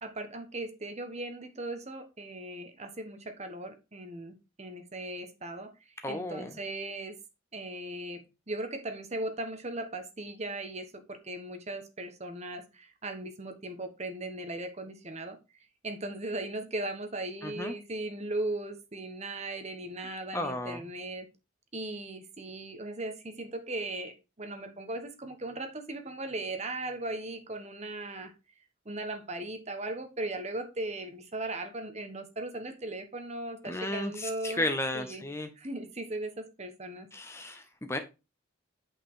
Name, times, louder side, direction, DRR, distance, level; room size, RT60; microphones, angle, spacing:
voice 1, 0.0-7.2 7.5-15.4 15.8-21.3 21.7-28.3 28.8-34.6 34.9-35.2 35.6-37.1, right 2 dB, 35° right, 8 dB, 1.2 m, -38 dB
voice 2, 6.0-6.5 17.4-17.7 20.3-20.8 33.7-35.5 37.1-38.0, left 1 dB, 15° left, 7 dB, 0.7 m, -33 dB
8.8 x 5.4 x 3.7 m, 0.28 s
head